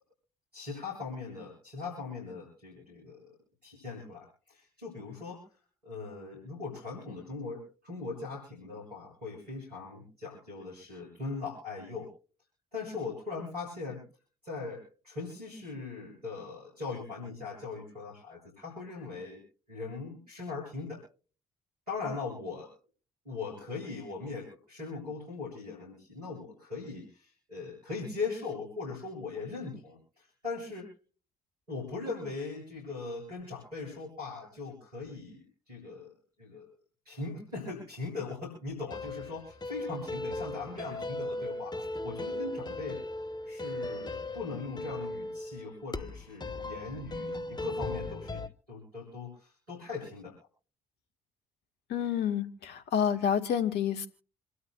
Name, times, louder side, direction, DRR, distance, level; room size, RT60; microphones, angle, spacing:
voice 1, 0.5-3.3 3.6-5.5 5.8-12.1 12.7-14.0 14.4-19.4 19.7-21.0 21.9-22.7 23.2-30.9 31.7-36.1 36.4-36.7 37.0-43.0 43.4-50.3, left 4 dB, 85° right, -3 dB, 7.9 m, -40 dB
sound 1, 38.9-48.5, left 2 dB, 20° left, 1.3 m, -37 dB
voice 2, 51.9-54.1, left 8 dB, 60° left, 8 dB, 1.6 m, -29 dB
28.0 x 13.0 x 2.4 m, 0.40 s
figure-of-eight pair, 45°, 20 cm